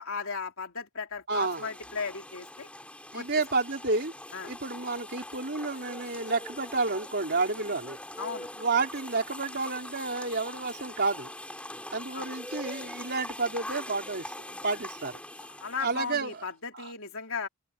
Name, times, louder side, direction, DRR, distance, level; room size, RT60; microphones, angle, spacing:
voice 1, 0.0-2.7 3.1-3.3 4.3-4.5 8.2-8.5 12.1-12.3 15.5-17.5, left 5 dB, 70° left, 3.2 m, -36 dB
sound 1, 1.3-16.5, left 1 dB, 5° left, 6.0 m, -43 dB
voice 2, 1.3-1.7 3.1-4.1 4.4-8.0 8.6-11.3 11.9-15.2 15.8-16.3 16.7-16.9, right 3 dB, 45° right, 4.5 m, -30 dB
head